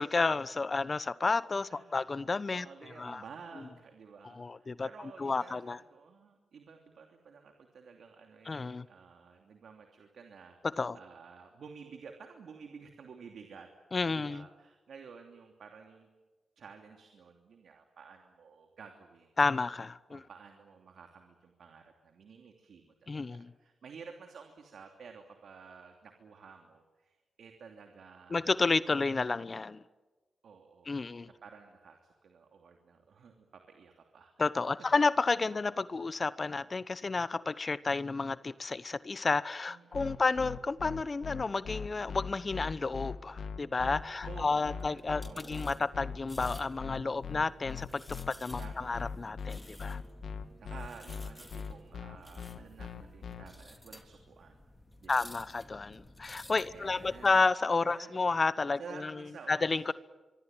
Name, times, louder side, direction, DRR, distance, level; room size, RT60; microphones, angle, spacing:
voice 1, 0.0-2.7 3.0-3.2 4.3-4.9 5.2-5.8 8.5-8.8 10.8-11.0 13.9-14.4 19.4-20.2 23.1-23.5 28.3-29.8 30.9-31.3 34.4-50.0 55.1-59.1 59.5-59.9, left 3 dB, 40° left, 17 dB, 0.9 m, -31 dB
voice 2, 1.7-2.0 2.5-13.7 14.1-16.1 16.6-19.3 20.1-28.5 30.4-34.3 34.6-34.8 39.7-40.2 44.2-45.8 48.6-49.0 50.6-54.6 55.0-55.3 56.7-57.4 57.9-58.2 58.8-59.9, right 5 dB, 75° right, 4 dB, 2.9 m, -52 dB
sound 1, 39.9-53.4, left 6 dB, 75° left, 2.2 m, -40 dB
sound 2, 43.7-57.4, left 1 dB, 15° left, 3.5 m, -54 dB
24.5 x 24.0 x 9.0 m, 1.2 s
cardioid pair, 55°, 0 cm